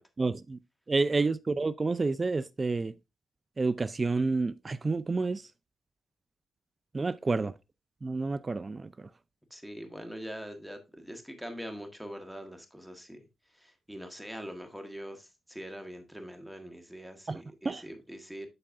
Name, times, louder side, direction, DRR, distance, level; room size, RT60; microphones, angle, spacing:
voice 1, 0.2-0.6 0.9-2.9 3.6-5.4 6.9-7.5 8.0-8.9 17.3-17.8, right 3 dB, 30° right, 0.4 m, -29 dB
voice 2, 9.5-13.2 13.5-18.5, equal, ahead, 1.5 m, -43 dB
12.0 x 4.4 x 2.6 m
cardioid pair, 90°, 0 cm